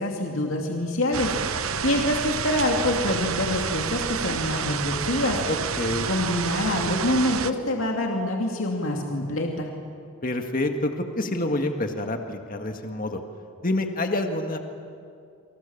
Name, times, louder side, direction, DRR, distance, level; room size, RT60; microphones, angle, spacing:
voice 1, 0.0-5.4 6.1-9.7, left 1 dB, 65° left, 1 dB, 2.5 m, -26 dB
sound 1, 1.1-7.5, right 6 dB, 75° right, 0.9 m, -29 dB
voice 2, 5.5-6.1 10.2-13.2 13.6-14.6, left 1 dB, 40° left, 5 dB, 1.9 m, -27 dB
30.0 x 24.5 x 7.2 m, 2.3 s
head